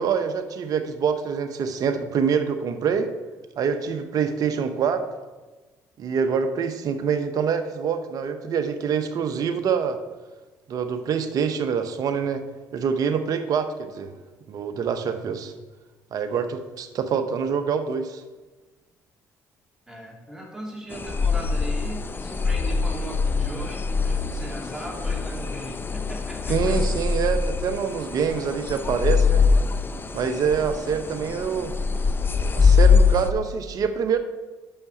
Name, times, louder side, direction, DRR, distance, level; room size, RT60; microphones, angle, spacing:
voice 1, 0.0-3.1 3.6-5.1 6.0-10.0 10.7-12.4 12.7-14.1 14.5-15.5 16.1-18.2 26.5-29.5 30.1-31.7 32.6-34.2, right 6 dB, 60° right, 8 dB, 0.8 m, -25 dB
voice 2, 19.9-26.7, right 1 dB, 5° right, -3 dB, 2.7 m, -38 dB
sound 1, 20.9-33.3, left 5 dB, 30° left, 0.6 m, -23 dB
5.9 x 5.5 x 6.8 m, 1.2 s
supercardioid pair, 60°, 7 cm